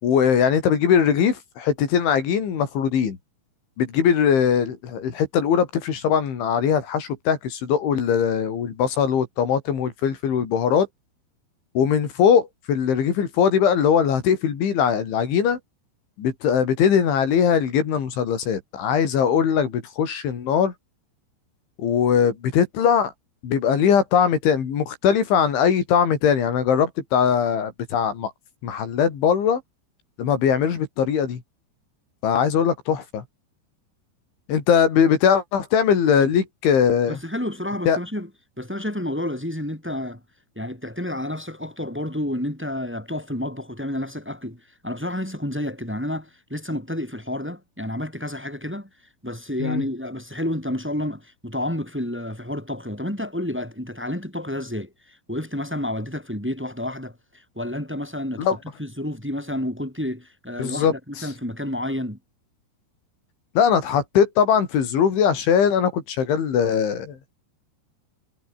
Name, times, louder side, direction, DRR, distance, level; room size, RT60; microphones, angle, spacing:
voice 1, 0.0-3.2 3.8-10.9 11.8-15.6 16.2-20.7 21.8-23.1 23.4-28.3 28.6-29.6 30.2-31.4 32.2-33.2 34.5-37.2 37.9-38.0 49.6-49.8 58.4-58.6 60.6-61.3 63.6-67.4, left 7 dB, 80° left, 6.3 m, -21 dB
voice 2, 37.1-38.3 38.6-40.2 40.6-48.9 49.2-62.2, left 1 dB, ahead, 5.8 m, -30 dB
omnidirectional pair, 5.3 m